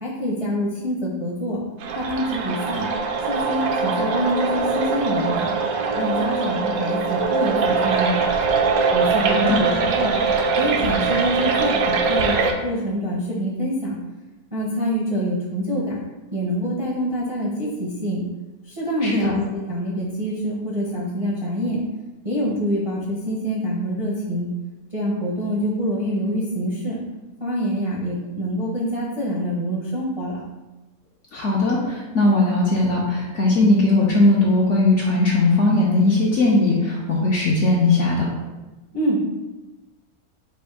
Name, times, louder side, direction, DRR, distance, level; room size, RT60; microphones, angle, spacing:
voice 1, 0.0-1.6 1.9-2.9 3.3-5.5 5.9-8.3 8.9-10.2 10.5-12.3 12.6-14.0 14.5-16.0 16.3-18.2 18.7-21.8 22.2-24.5 24.9-27.0 27.4-30.4 38.9-39.3, equal, 35° right, -6 dB, 0.5 m, -25 dB
sound 1, 1.8-12.5, right 4 dB, 70° right, 0.8 m, -22 dB
voice 2, 9.3-9.6 19.0-19.3 31.3-38.3, left 2 dB, 60° left, -3 dB, 0.8 m, -19 dB
4.3 x 2.5 x 4.8 m, 1.1 s
omnidirectional pair, 1.8 m